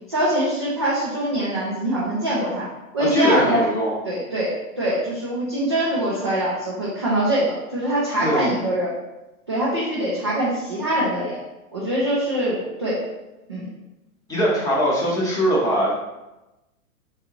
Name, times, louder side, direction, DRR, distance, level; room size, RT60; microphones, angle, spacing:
voice 1, 0.1-2.7 2.9-3.6 4.0-9.0 9.5-11.4 11.7-13.0 13.5-13.7, right 1 dB, 20° right, -8 dB, 0.3 m, -23 dB
voice 2, 3.1-4.0 8.2-8.4 14.3-15.9, equal, 10° left, -5 dB, 0.7 m, -21 dB
3.8 x 3.3 x 3.0 m, 1.0 s
figure-of-eight pair, 125°, 44 cm